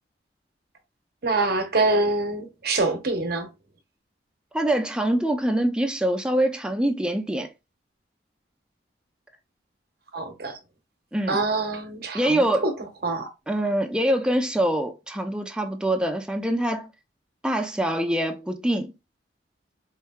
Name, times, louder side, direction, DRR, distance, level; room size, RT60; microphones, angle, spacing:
voice 1, 1.2-3.5 10.1-10.6 11.3-12.7 13.0-13.3, right 2 dB, 60° right, 0.9 m, -25 dB
voice 2, 4.5-7.5 11.1-11.4 12.1-12.7 13.5-16.9 17.4-18.9, right 1 dB, 5° right, 0.5 m, -24 dB
4.5 x 2.7 x 2.3 m
head